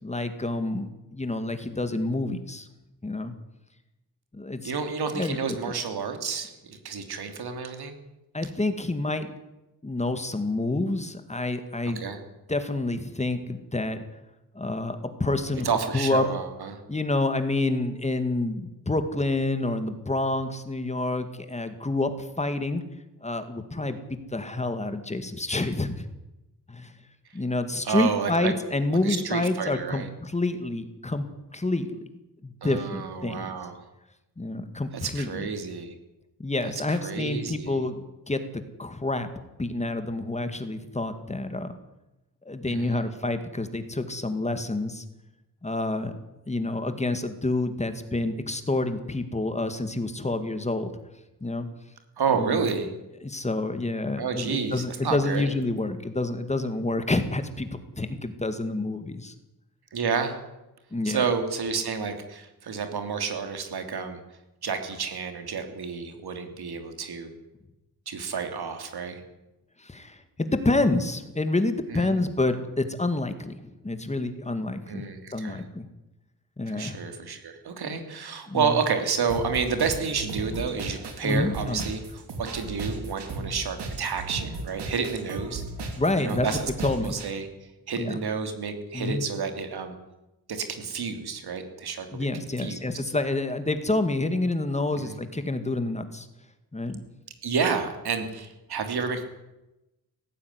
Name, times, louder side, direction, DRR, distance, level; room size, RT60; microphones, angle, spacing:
voice 1, 0.0-2.7 3.0-3.4 4.3-4.7 5.1-5.6 8.3-9.3 9.8-12.0 12.5-14.0 14.5-16.3 16.9-22.8 23.2-26.1 26.7-27.0 27.3-31.3 31.5-32.0 32.4-33.5 34.4-35.5 36.4-39.3 39.6-41.7 42.5-45.0 45.6-46.2 46.5-50.9 51.4-51.7 52.3-52.7 53.2-59.3 60.9-61.3 69.8-75.1 75.3-75.9 76.6-77.0 78.5-78.8 81.2-81.8 86.0-87.2 88.0-88.2 88.9-89.2 92.1-96.3 96.7-97.0, left 2 dB, 15° left, 9 dB, 2.1 m, -28 dB
voice 2, 4.6-8.0 11.9-12.2 15.6-16.8 27.9-28.5 29.0-30.1 32.6-33.8 35.0-35.9 36.9-37.8 42.7-43.0 52.2-52.9 54.2-55.5 59.9-60.3 61.0-64.2 64.6-67.3 68.1-69.2 71.9-72.2 74.9-75.6 76.7-82.0 82.4-85.6 86.2-87.5 87.9-89.9 90.5-92.3 92.6-92.8 94.9-95.2 97.4-99.2, right 5 dB, 75° right, 6 dB, 3.1 m, -30 dB
sound 1, 79.3-87.3, right 3 dB, 90° right, 3.5 m, -36 dB
18.0 x 15.0 x 9.7 m, 0.97 s
wide cardioid pair, 125°, 39 cm